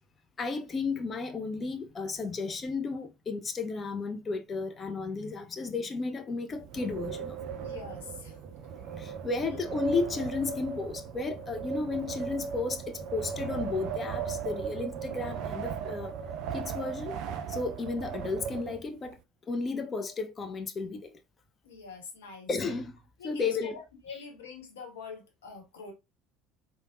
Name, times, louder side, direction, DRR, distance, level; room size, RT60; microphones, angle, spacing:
voice 1, 0.4-7.4 8.9-16.1 16.5-17.2 17.5-19.2 19.5-21.1 22.5-23.0 23.2-23.8, left 4 dB, 30° left, 0.5 m, -33 dB
Wind, 6.5-19.1, right 6 dB, 50° right, 0.3 m, -37 dB
voice 2, 7.6-8.4 21.6-22.5 23.2-25.9, left 5 dB, 70° left, 0.7 m, -45 dB
3.2 x 2.0 x 2.5 m
figure-of-eight pair, 65°, 0 cm